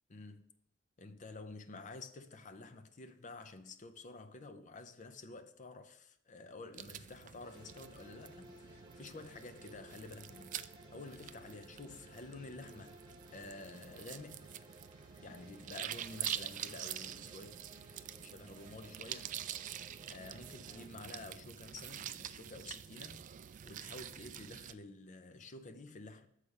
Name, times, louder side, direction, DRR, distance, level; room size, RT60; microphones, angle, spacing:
voice 1, 0.1-0.5 1.0-13.0 13.3-14.5 15.2-19.3 20.1-23.3 23.6-26.3, left 3 dB, 35° left, 0.6 m, -50 dB
sound 1, 6.7-24.7, right 10 dB, 40° right, 0.3 m, -46 dB
sound 2, 7.4-20.9, right 1 dB, 20° right, 1.4 m, -59 dB
6.8 x 4.9 x 7.0 m
head